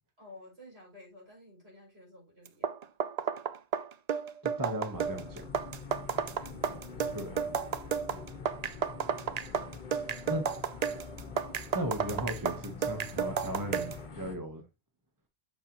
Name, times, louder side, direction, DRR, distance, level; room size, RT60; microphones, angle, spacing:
voice 1, 0.2-2.8, left 1 dB, 70° right, 5.0 m, -54 dB
sound 1, 2.5-14.0, right 7 dB, 50° right, 0.5 m, -33 dB
voice 2, 4.6-5.5 7.1-7.5 10.3-10.5 11.7-14.6, right 1 dB, 20° right, 1.2 m, -36 dB
sound 2, 4.9-14.4, left 5 dB, 45° left, 1.2 m, -45 dB
6.5 x 6.5 x 3.0 m
omnidirectional pair, 1.1 m